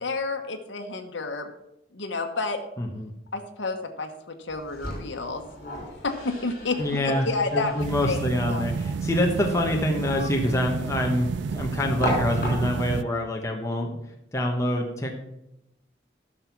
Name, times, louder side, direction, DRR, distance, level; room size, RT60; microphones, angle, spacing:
voice 1, 0.0-1.5 1.9-2.6 3.3-5.4 6.0-6.8 7.0-8.2 8.5-8.6, left 3 dB, 85° left, 4 dB, 1.1 m, -30 dB
voice 2, 2.8-3.1 6.8-14.0 14.3-15.1, left 1 dB, 15° left, 1 dB, 1.1 m, -26 dB
sound 1, 4.5-13.0, equal, 45° left, 3.9 m, -36 dB
sound 2, 7.8-13.0, right 5 dB, 70° right, 0.4 m, -31 dB
11.0 x 6.3 x 5.9 m, 0.86 s
head